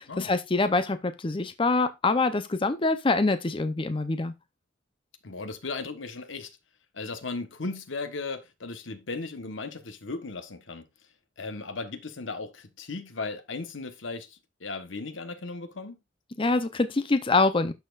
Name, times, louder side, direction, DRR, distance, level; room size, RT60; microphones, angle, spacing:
voice 1, 0.0-4.3 16.4-17.7, left 3 dB, 30° left, 0.6 m, -25 dB
voice 2, 5.2-6.6 6.9-10.9 11.4-16.0, left 3 dB, 85° left, 1.1 m, -36 dB
12.0 x 4.3 x 2.4 m
head